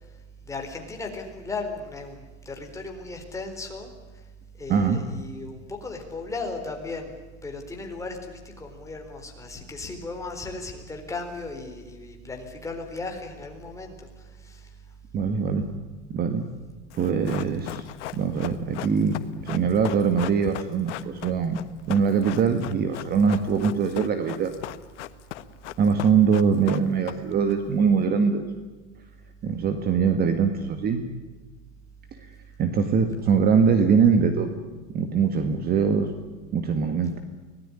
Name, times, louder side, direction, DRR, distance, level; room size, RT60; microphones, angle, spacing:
voice 1, 0.5-4.2 4.5-7.1 7.4-14.8, left 3 dB, 10° left, 2 dB, 4.1 m, -36 dB
voice 2, 4.7-5.0 15.1-15.7 16.1-16.4 17.0-17.9 18.1-19.2 19.4-21.6 21.9-24.5 25.8-28.4 29.4-31.0 32.6-34.5 34.9-36.1 36.5-37.2, right 6 dB, 25° right, 8 dB, 1.8 m, -22 dB
Run, 16.9-27.5 27.8-27.9, left 14 dB, 80° left, 1.5 m, -37 dB
25.0 x 18.5 x 10.0 m, 1.3 s
supercardioid pair, 150°, 36 cm